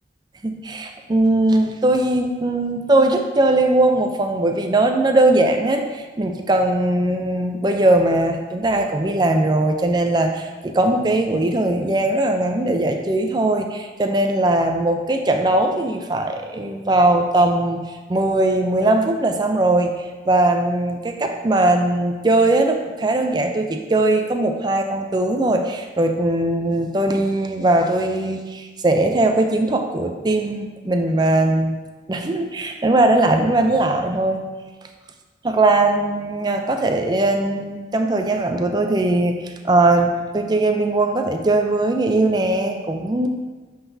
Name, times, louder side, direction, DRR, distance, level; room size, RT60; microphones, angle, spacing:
voice 1, 0.4-17.8 18.1-31.7 32.1-34.4 35.4-43.3, right 2 dB, 25° right, 4 dB, 0.4 m, -20 dB
9.8 x 3.9 x 2.7 m, 1.3 s
head